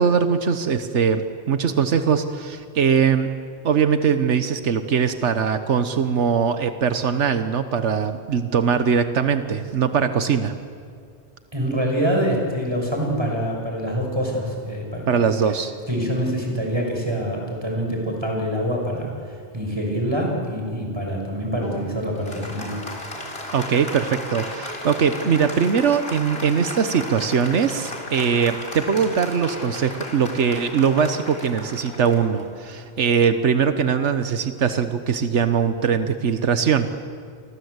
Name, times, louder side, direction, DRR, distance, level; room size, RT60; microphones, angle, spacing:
voice 1, 0.0-3.3 3.6-10.5 15.1-15.7 23.5-36.9, right 6 dB, 85° right, 9 dB, 1.4 m, -21 dB
voice 2, 11.5-15.3 15.9-22.7, equal, 25° right, 1 dB, 6.3 m, -25 dB
Applause, 21.6-33.5, left 1 dB, 60° left, 3.9 m, -35 dB
29.5 x 24.0 x 8.1 m, 2.2 s
omnidirectional pair, 1.2 m